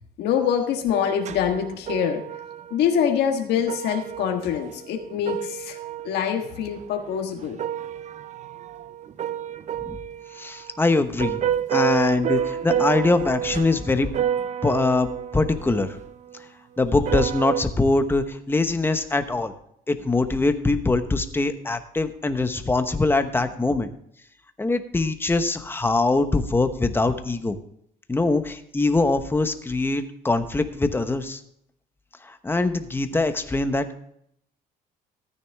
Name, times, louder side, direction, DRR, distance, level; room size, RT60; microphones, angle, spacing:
voice 1, 0.2-2.2 2.7-5.8 6.0-7.6, left 8 dB, 80° left, 3 dB, 1.5 m, -25 dB
sound 1, 0.9-3.2 3.6-16.4 16.8-17.6, right 9 dB, 45° right, 0.6 m, -30 dB
voice 2, 10.3-11.4 11.7-14.1 14.6-16.0 16.8-19.5 19.9-23.9 24.6-27.6 28.1-31.4 32.2-34.0, left 3 dB, 15° left, 9 dB, 1.0 m, -23 dB
14.0 x 9.6 x 3.5 m, 0.70 s
cardioid pair, 110°, 17 cm